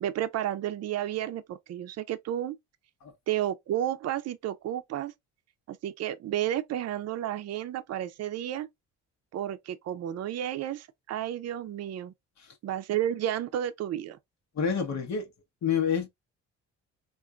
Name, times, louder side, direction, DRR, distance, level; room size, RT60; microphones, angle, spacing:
voice 1, 0.0-2.6 3.3-5.1 5.7-8.7 9.3-12.1 12.6-14.2, right 11 dB, 55° right, 0.5 m, -32 dB
voice 2, 14.6-15.3 15.6-16.1, left 7 dB, 65° left, 1.0 m, -28 dB
3.7 x 2.5 x 2.3 m
cardioid pair, 90°, 30 cm